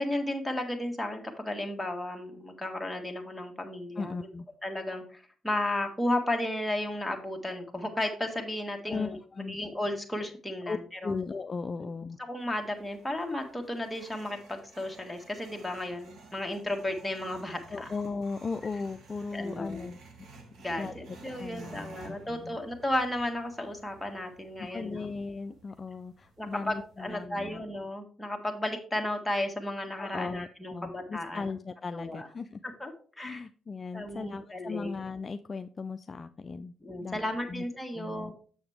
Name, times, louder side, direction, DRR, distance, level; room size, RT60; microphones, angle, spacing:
voice 1, 0.0-4.2 4.6-11.1 12.2-17.9 19.3-19.9 20.6-25.1 26.4-31.4 31.9-32.3 32.8-32.9 33.2-33.4 33.9-35.0 36.8-38.3, left 1 dB, 5° left, 2 dB, 1.6 m, -34 dB
voice 2, 4.0-4.5 8.8-9.6 10.7-10.8 11.0-12.2 17.7-20.0 20.8-22.6 24.6-27.6 30.0-32.6 33.2-36.7 37.0-37.2 37.5-37.6 37.9-38.3, left 4 dB, 35° left, 9 dB, 0.3 m, -37 dB
sound 1, 12.4-27.2, right 3 dB, 65° right, 1.8 m, -53 dB
7.0 x 6.8 x 3.5 m, 0.42 s
cardioid pair, 90°, 0 cm